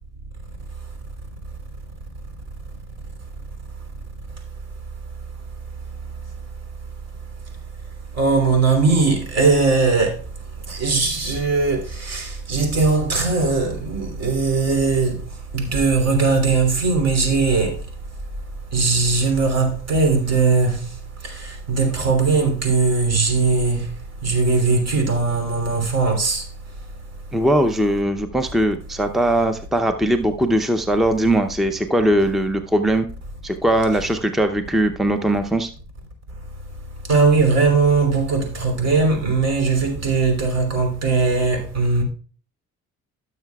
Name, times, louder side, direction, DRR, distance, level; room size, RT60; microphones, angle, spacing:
voice 1, 0.7-1.1 1.4-1.6 3.2-27.4 36.6-42.0, right 4 dB, 55° right, 3.1 m, -21 dB
voice 2, 27.3-33.1 33.4-35.7, right 1 dB, ahead, 0.6 m, -20 dB
15.5 x 6.7 x 2.3 m
cardioid pair, 90°, 30 cm